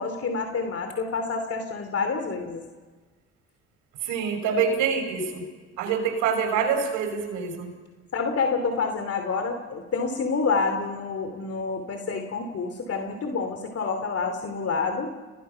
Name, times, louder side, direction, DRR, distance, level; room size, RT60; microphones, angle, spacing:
voice 1, 0.0-2.6 8.1-15.1, left 4 dB, 50° left, 6 dB, 3.0 m, -28 dB
voice 2, 4.0-5.4 5.8-7.7, right 6 dB, 85° right, 4 dB, 5.8 m, -26 dB
30.0 x 18.5 x 5.8 m, 1.4 s
supercardioid pair, 70°, 31 cm